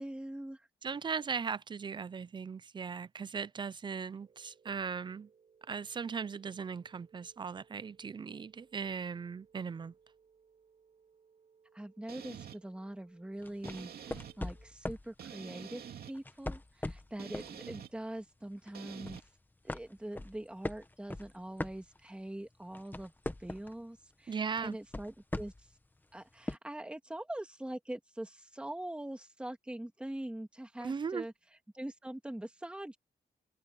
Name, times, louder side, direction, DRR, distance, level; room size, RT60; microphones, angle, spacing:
voice 1, 0.0-0.7 11.7-19.2 19.6-25.5 26.1-31.3 31.7-33.0, right 1 dB, 5° right, 1.9 m, -43 dB
voice 2, 0.8-5.3 5.7-9.9 24.3-24.8 30.8-31.3, right 6 dB, 30° right, 0.5 m, -38 dB
sound 1, 4.2-14.7, right 6 dB, 45° right, 4.3 m, -66 dB
sound 2, 12.1-12.6 13.6-14.4 15.2-16.1 17.2-17.9 18.7-19.2, right 8 dB, 75° right, 2.6 m, -47 dB
sound 3, 13.4-15.1 16.1-17.6 18.0-18.2 18.6-19.3 19.7-22.3 22.6-23.8 24.6-25.7 26.5-26.6, left 2 dB, 10° left, 1.1 m, -40 dB
wide cardioid pair, 145°, 16 cm